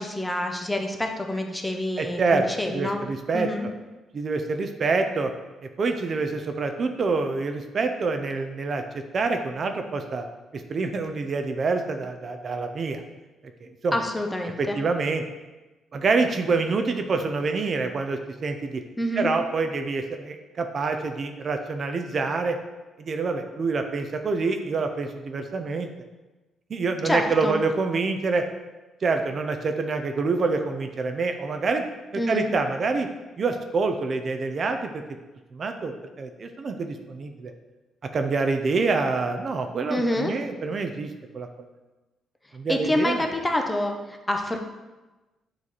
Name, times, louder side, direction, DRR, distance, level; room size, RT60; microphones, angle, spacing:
voice 1, 0.0-3.0 3.3-3.7 13.9-14.8 19.0-19.3 27.0-27.5 32.2-32.5 39.9-40.3 42.7-44.6, left 1 dB, 15° left, 3 dB, 0.7 m, -27 dB
voice 2, 2.0-2.5 2.7-3.5 4.1-5.3 5.8-10.3 10.5-13.0 13.8-13.9 14.6-15.2 15.9-18.8 19.2-22.6 23.0-25.9 26.7-28.5 29.0-31.9 32.3-33.1 33.4-35.0 35.5-37.5 38.1-41.5 42.5-43.2, right 4 dB, 45° right, 6 dB, 0.5 m, -26 dB
7.3 x 3.1 x 4.1 m, 1.1 s
cardioid pair, 90°, 0 cm